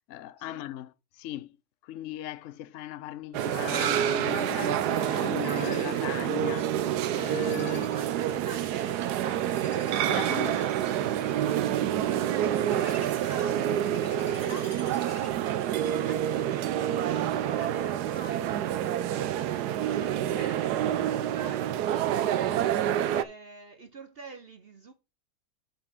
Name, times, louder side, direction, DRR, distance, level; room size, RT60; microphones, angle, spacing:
voice 1, 0.1-1.6 1.8-7.9 10.1-10.6, left 14 dB, 65° left, 0.7 m, -38 dB
sound 1, 3.3-23.2, right 11 dB, 70° right, 1.1 m, -28 dB
sound 2, 4.4-15.3, left 2 dB, 20° left, 1.8 m, -51 dB
voice 2, 7.6-9.6 10.0-13.9 14.1-18.7 19.1-21.9 22.2-22.7 23.1-24.9, right 3 dB, 50° right, 0.7 m, -46 dB
5.9 x 5.4 x 6.4 m
omnidirectional pair, 2.0 m